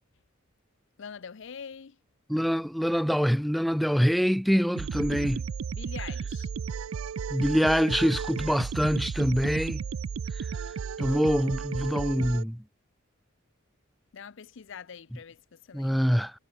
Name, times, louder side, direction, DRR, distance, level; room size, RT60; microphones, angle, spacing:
voice 1, 1.0-2.0 5.7-6.5 14.1-16.0, left 6 dB, 65° left, 0.6 m, -44 dB
voice 2, 2.3-5.4 7.3-9.8 10.4-10.5 11.0-12.6 15.7-16.3, equal, ahead, 0.4 m, -25 dB
sound 1, 4.8-12.4, right 6 dB, 80° right, 0.4 m, -34 dB
head